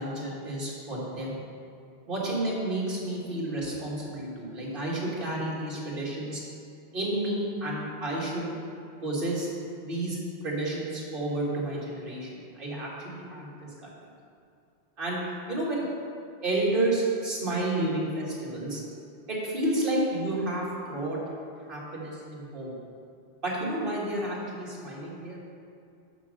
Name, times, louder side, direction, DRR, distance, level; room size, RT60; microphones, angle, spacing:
voice 1, 0.0-1.4 2.1-6.4 6.9-8.5 9.0-9.5 9.8-10.2 10.4-12.3 12.6-13.7 15.0-15.2 15.5-15.9 16.4-18.8 19.3-21.2 21.7-22.7 23.4-25.4, right 1 dB, 50° right, -5 dB, 2.0 m, -30 dB
6.4 x 6.0 x 6.3 m, 2.5 s
omnidirectional pair, 1.2 m